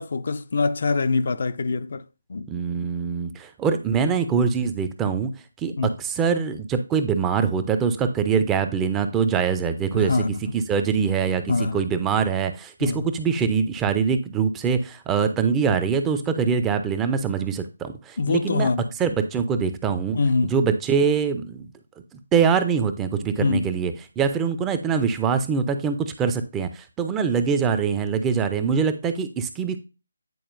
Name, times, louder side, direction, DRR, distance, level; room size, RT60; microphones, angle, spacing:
voice 1, 0.0-2.5 5.8-6.0 9.9-10.4 11.5-11.8 12.8-13.1 18.2-18.9 20.1-20.5 23.4-23.7, left 4 dB, 55° left, 0.4 m, -24 dB
voice 2, 2.5-5.3 5.6-5.7 6.0-10.1 10.5-18.7 19.0-20.2 20.5-21.7 22.3-29.8, right 6 dB, 10° right, 0.5 m, -23 dB
9.3 x 4.2 x 2.6 m
figure-of-eight pair, 155°, 0 cm